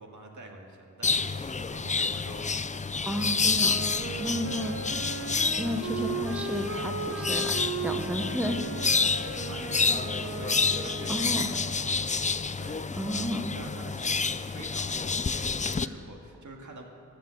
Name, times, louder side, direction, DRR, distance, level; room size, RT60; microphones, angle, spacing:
voice 1, 0.0-2.6 9.4-12.1 12.6-12.9 13.5-16.8, right 2 dB, 70° right, 1 dB, 2.1 m, -46 dB
sound 1, 1.0-15.9, left 4 dB, 25° left, 0.4 m, -29 dB
voice 2, 3.0-3.8 4.2-4.8 5.6-7.5 7.8-8.6 11.1-11.5 13.0-13.5, equal, 5° right, 5 dB, 0.9 m, -32 dB
Wind instrument woodwind instrument, 3.4-11.7, right 4 dB, 45° right, 1.0 m, -37 dB
14.5 x 10.5 x 7.7 m, 2.5 s
wide cardioid pair, 130°, 31 cm